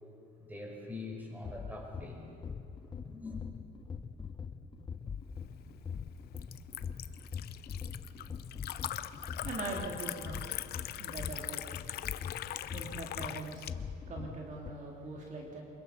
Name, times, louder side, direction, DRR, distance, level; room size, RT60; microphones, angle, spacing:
voice 1, 0.4-2.2 3.1-3.4, left 2 dB, 10° right, 1 dB, 4.9 m, -43 dB
sound 1, 1.1-14.7, left 6 dB, 25° left, 0.8 m, -43 dB
Liquid, 5.3-13.7, left 13 dB, 70° left, 0.7 m, -42 dB
voice 2, 9.4-10.5 11.0-11.7 12.5-15.6, right 3 dB, 45° right, -1 dB, 2.9 m, -42 dB
24.5 x 22.0 x 5.8 m, 2.8 s
cardioid pair, 110°, 17 cm